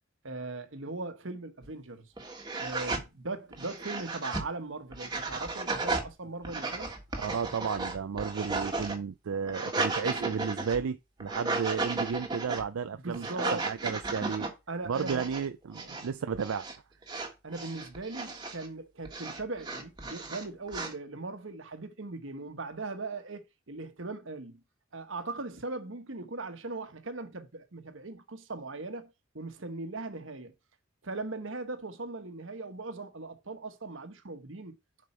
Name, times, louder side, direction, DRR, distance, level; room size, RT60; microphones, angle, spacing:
voice 1, 0.2-2.1 2.6-6.9 12.8-13.6 14.7-15.3 15.8-16.0 17.4-24.6 24.9-30.5 31.0-34.7, right 3 dB, 70° right, 1.3 m, -39 dB
sound 1, 1.6-1.7 2.2-3.0 3.5-4.5 4.9-6.1 6.4-9.0 9.3-10.8 11.2-12.6 13.1-14.5 14.9-15.4 15.7-16.1 16.3-16.8 17.0-18.7 19.0-20.9, right 3 dB, 20° right, 1.4 m, -34 dB
voice 2, 7.2-14.5 14.9-16.7, right 6 dB, 85° right, 0.4 m, -33 dB
7.6 x 5.2 x 4.4 m
head